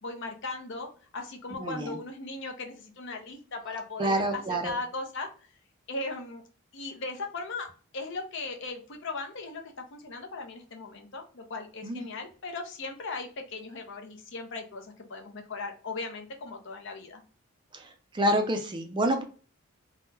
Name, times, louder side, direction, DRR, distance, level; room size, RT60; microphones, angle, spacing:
voice 1, 0.0-5.3 5.9-6.4 6.7-7.7 7.9-17.2, left 3 dB, 60° left, 3 dB, 0.7 m, -38 dB
voice 2, 1.6-1.9 4.0-4.8 11.8-12.0 17.7-19.2, right 1 dB, 20° right, 5 dB, 0.4 m, -28 dB
3.5 x 2.1 x 2.8 m, 0.38 s
head